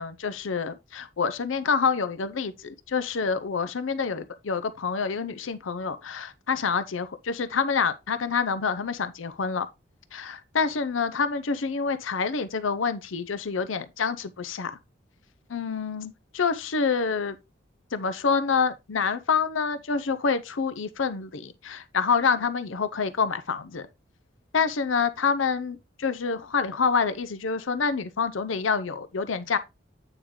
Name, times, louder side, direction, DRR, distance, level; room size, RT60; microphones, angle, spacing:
voice 1, 0.0-9.7 10.1-14.8 15.5-17.4 17.9-23.9 24.5-29.6, left 5 dB, 85° left, 0.7 m, -27 dB
8.7 x 4.9 x 3.7 m
head